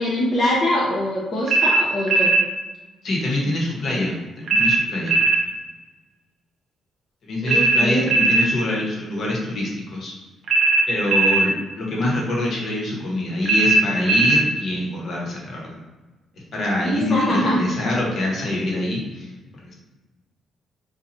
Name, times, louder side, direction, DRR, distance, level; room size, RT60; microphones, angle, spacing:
voice 1, 0.0-2.3 7.4-8.1 16.8-17.6, left 1 dB, 30° left, -7 dB, 0.6 m, -23 dB
sound 1, 1.5-2.5 4.5-5.4 7.5-8.5 10.5-11.5 13.4-14.5, right 3 dB, 55° right, 0.6 m, -18 dB
voice 2, 3.0-5.2 7.2-10.1 10.9-15.8 16.3-19.7, left 1 dB, 50° left, -2 dB, 1.0 m, -25 dB
4.2 x 2.3 x 2.6 m, 1.2 s
cardioid pair, 145°, 0 cm